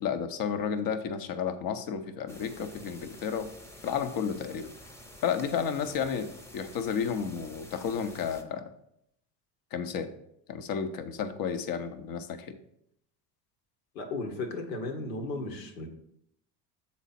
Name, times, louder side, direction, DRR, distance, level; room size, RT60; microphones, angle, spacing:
voice 1, 0.0-3.5 3.8-4.7 5.2-8.7 9.7-10.1 10.5-12.5, left 7 dB, 45° left, 9 dB, 0.8 m, -32 dB
sound 1, 2.3-8.4, equal, 5° left, 0.9 m, -50 dB
voice 2, 13.9-15.9, left 2 dB, 85° left, 4 dB, 1.2 m, -35 dB
7.0 x 4.2 x 4.1 m, 0.75 s
hypercardioid pair, 70°, 50 cm